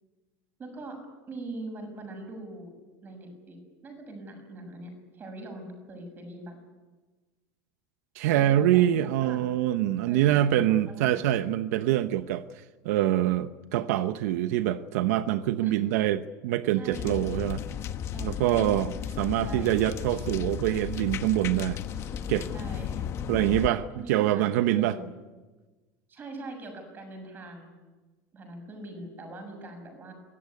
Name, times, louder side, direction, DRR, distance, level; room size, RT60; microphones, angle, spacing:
voice 1, 0.6-1.0 1.3-2.7 3.0-3.6 3.8-6.5 8.3-9.5 10.1-11.2 15.6-15.7 16.7-17.2 18.1-18.7 19.3-19.7 22.5-23.1 23.7-25.1 26.1-27.7 28.3-30.1, right 2 dB, 25° right, 5 dB, 7.0 m, -42 dB
voice 2, 8.1-17.6 18.2-21.8 22.3-22.5 23.3-25.0, right 13 dB, 80° right, 11 dB, 0.9 m, -25 dB
sound 1, 16.9-23.7, left 9 dB, 30° left, 1.2 m, -34 dB
24.0 x 17.0 x 9.8 m, 1.3 s
supercardioid pair, 160°, 9 cm